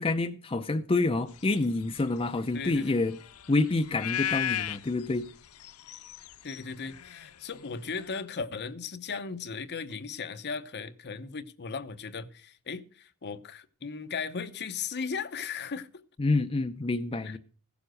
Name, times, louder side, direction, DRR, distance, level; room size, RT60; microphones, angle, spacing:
voice 1, 0.0-3.2 3.5-5.3 16.2-17.4, left 2 dB, 25° left, 0.5 m, -27 dB
sound 1, 1.4-8.2, left 11 dB, 80° left, 0.6 m, -37 dB
voice 2, 2.5-2.9 6.4-15.9 17.2-17.4, left 5 dB, 50° left, 0.8 m, -37 dB
16.0 x 7.1 x 6.4 m
head